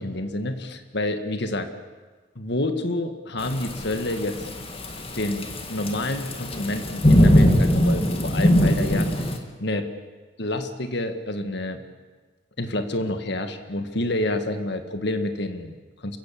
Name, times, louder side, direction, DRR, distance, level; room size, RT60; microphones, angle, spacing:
voice 1, 0.0-1.7 2.4-4.5 5.1-9.3 9.6-9.9 10.4-11.8 12.6-16.2, left 1 dB, 60° left, 7 dB, 1.8 m, -28 dB
Thunderstorm / Rain, 3.4-9.4, equal, 30° left, 2.2 m, -21 dB
28.0 x 15.5 x 8.9 m, 1.3 s
head